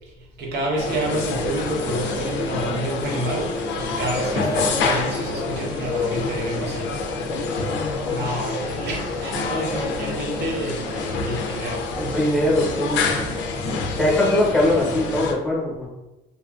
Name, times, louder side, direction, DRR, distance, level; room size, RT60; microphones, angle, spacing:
voice 1, 0.4-7.0 8.1-11.9 13.3-13.5, right 1 dB, 65° right, -1 dB, 0.8 m, -29 dB
supermarket ambience, 0.8-15.3, left 3 dB, 75° left, 0.4 m, -27 dB
voice 2, 12.0-13.1 14.0-15.9, left 1 dB, 5° left, -4 dB, 0.9 m, -21 dB
2.7 x 2.4 x 2.3 m, 0.98 s
cardioid pair, 125°, 19 cm